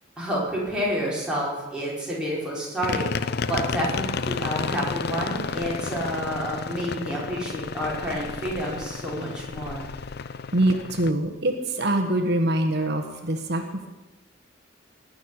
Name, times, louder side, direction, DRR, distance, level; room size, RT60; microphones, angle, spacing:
voice 1, 0.2-9.9, equal, 5° right, -6 dB, 5.0 m, -29 dB
sound 1, 2.8-11.1, left 5 dB, 55° left, 0.5 m, -31 dB
voice 2, 10.5-13.6, right 1 dB, 55° right, 4 dB, 1.3 m, -24 dB
19.5 x 6.5 x 8.8 m, 1.1 s
head